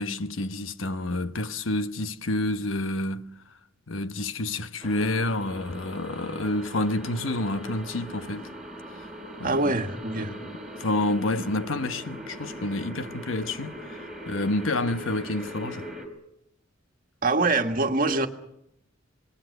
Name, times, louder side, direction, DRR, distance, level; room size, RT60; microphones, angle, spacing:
voice 1, 0.0-3.3 3.9-8.5 9.0-9.1 9.4-9.8 10.2-10.5 10.8-14.0 14.3-15.9, left 2 dB, 85° left, 1.0 m, -29 dB
sound 1, 4.8-16.1, equal, 5° right, 3.8 m, -40 dB
voice 2, 9.4-10.3 17.2-18.3, right 3 dB, 45° right, 1.7 m, -24 dB
26.5 x 20.0 x 6.6 m
head